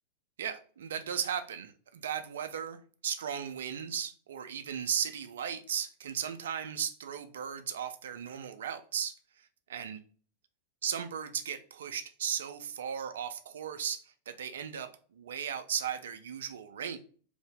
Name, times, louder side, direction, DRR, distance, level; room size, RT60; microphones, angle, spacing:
voice 1, 0.4-10.0 10.8-14.0 14.3-17.0, right 8 dB, 60° right, 0.3 m, -36 dB
2.7 x 2.0 x 3.5 m
figure-of-eight pair, 90°, 0 cm